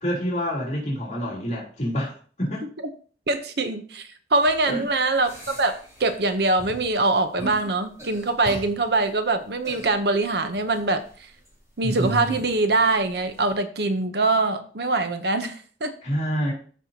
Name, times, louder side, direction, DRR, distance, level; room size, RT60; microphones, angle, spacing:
voice 1, 0.0-2.6 4.7-4.8 16.0-16.5, equal, 40° left, -4 dB, 3.2 m, -27 dB
voice 2, 3.3-11.0 11.8-15.9, right 2 dB, 65° right, 9 dB, 0.8 m, -23 dB
sound 1, 4.4-4.6 5.2-6.3 6.6-6.9 7.4-7.7 8.0-8.9 9.6-10.0 10.6-10.9 11.8-12.9 13.2-13.3, right 2 dB, 15° right, 2.8 m, -34 dB
14.5 x 5.4 x 2.8 m, 0.43 s
head